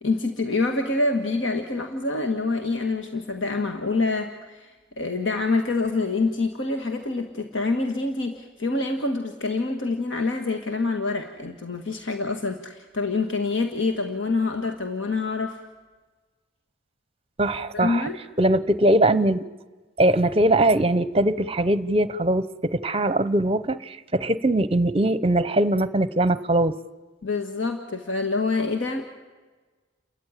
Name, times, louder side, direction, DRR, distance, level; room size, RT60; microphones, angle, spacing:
voice 1, 0.0-15.6 17.7-18.2 27.2-29.0, left 3 dB, 80° left, 4 dB, 1.7 m, -26 dB
voice 2, 17.4-18.1 18.4-19.4 20.0-26.7, right 1 dB, 30° right, 15 dB, 0.7 m, -21 dB
29.5 x 14.0 x 9.9 m, 1.3 s
head